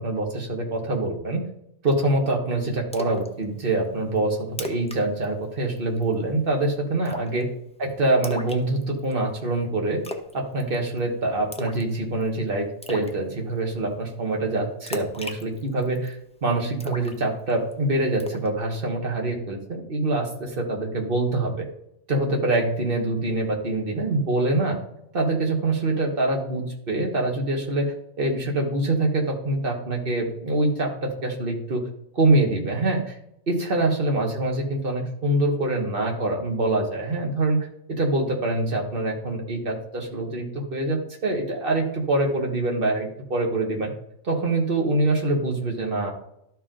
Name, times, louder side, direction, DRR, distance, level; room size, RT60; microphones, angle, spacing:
voice 1, 0.0-1.4 1.8-7.5 7.8-10.0 10.3-16.2 16.4-21.5 22.1-24.8 25.1-31.8 32.1-33.2 33.5-43.9 44.2-46.1, right 2 dB, 45° right, 1 dB, 1.6 m, -25 dB
Splash splatter, 2.9-3.3 3.6-3.7 4.2-4.3 4.5-5.0 5.2-5.4 5.8-6.1 7.0-7.4 8.2-9.1 10.0-10.3 10.6-11.0 11.5-11.9 12.2-12.3 12.8-13.1 14.9-16.1 16.8-17.7 18.2-18.5, left 1 dB, 10° left, 0.4 m, -34 dB
12.0 x 4.6 x 3.8 m, 0.77 s
omnidirectional pair, 1.4 m